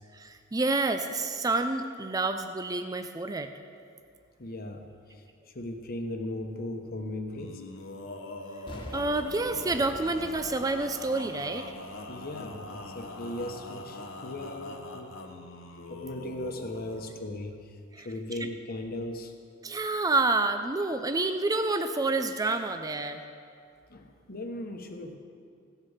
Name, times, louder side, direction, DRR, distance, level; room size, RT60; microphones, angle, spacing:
voice 1, 0.1-3.5 8.9-11.7 18.0-18.1 19.6-23.2, right 3 dB, 20° right, 7 dB, 0.5 m, -28 dB
voice 2, 4.4-7.6 12.1-15.3 15.9-19.3 23.9-25.2, left 1 dB, 50° left, 5 dB, 1.2 m, -38 dB
Male singing, 7.3-17.1, left 2 dB, 85° left, 1.1 m, -43 dB
Explosion, 8.7-12.6 13.0-13.1, equal, 25° left, 1.4 m, -46 dB
16.0 x 8.2 x 5.6 m, 2.3 s
head